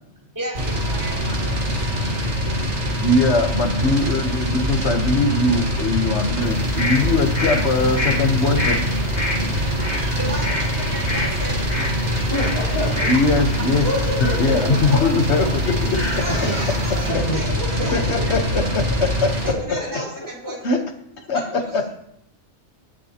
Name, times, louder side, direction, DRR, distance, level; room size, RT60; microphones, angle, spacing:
voice 1, 0.3-1.6 10.2-11.8 14.9-18.3 18.6-19.1 19.4-20.7 21.6-21.9, equal, 15° right, -4 dB, 3.3 m, -33 dB
sound 1, 0.5-19.5, equal, 75° right, 2.0 m, -24 dB
voice 2, 3.0-8.9 13.0-13.9 14.2-16.0 17.9-19.3 20.6-20.8 21.3-21.8, left 3 dB, 70° left, 6 dB, 1.4 m, -21 dB
sound 2, 6.4-17.1, left 1 dB, 40° left, 2.2 m, -29 dB
voice 3, 12.0-13.1 13.8-14.8 16.3-16.5 17.1-18.2 19.4-20.5, left 1 dB, 20° left, -10 dB, 3.6 m, -28 dB
18.5 x 7.5 x 2.9 m, 0.73 s
omnidirectional pair, 1.2 m